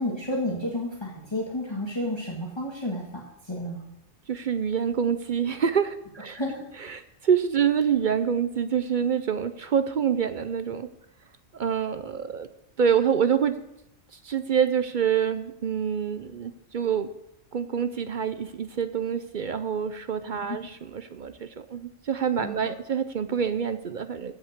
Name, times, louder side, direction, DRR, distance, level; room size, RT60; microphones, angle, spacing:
voice 1, 0.0-3.9 6.3-6.6 20.4-20.6 22.4-22.6, left 1 dB, 20° left, -3 dB, 1.8 m, -31 dB
voice 2, 4.3-6.4 6.8-10.9 11.5-12.5 12.8-13.6 14.2-17.1 17.5-24.3, right 7 dB, 50° right, 11 dB, 0.6 m, -26 dB
15.0 x 5.7 x 6.5 m, 0.83 s
omnidirectional pair, 1.3 m